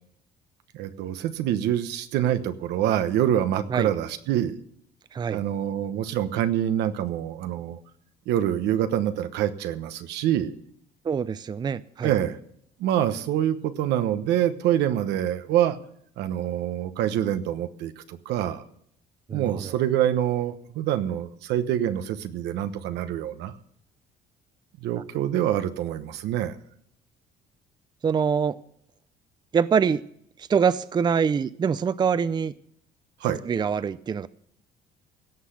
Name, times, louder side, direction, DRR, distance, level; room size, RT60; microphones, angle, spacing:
voice 1, 0.7-4.6 5.3-7.8 8.3-10.5 12.0-12.4 12.8-15.8 16.2-18.6 19.3-23.5 24.8-26.6 33.2-33.4, right 11 dB, 85° right, 10 dB, 1.1 m, -26 dB
voice 2, 11.1-12.1 19.3-19.7 28.0-28.6 29.5-30.0 30.5-32.5 33.5-34.3, right 6 dB, 25° right, 16 dB, 0.4 m, -24 dB
16.5 x 5.9 x 8.3 m, 0.67 s
cardioid pair, 110°, 17 cm